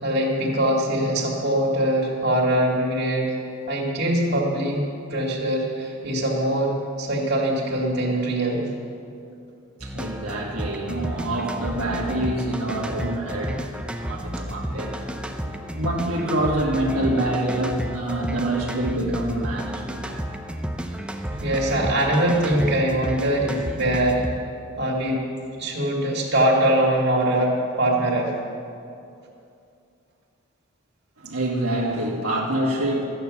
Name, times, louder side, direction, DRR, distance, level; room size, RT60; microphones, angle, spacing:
voice 1, 0.0-3.4 3.7-4.8 5.1-8.6 21.4-24.2 24.8-25.2 25.6-28.3, right 1 dB, 50° right, -3 dB, 2.3 m, -22 dB
sound 1, 9.8-24.3, equal, 5° right, 0.5 m, -31 dB
voice 2, 9.8-13.6 14.0-14.9 15.4-20.4 23.8-23.9 31.2-33.0, right 1 dB, 85° right, -3 dB, 1.5 m, -26 dB
14.0 x 9.2 x 7.0 m, 2.6 s
head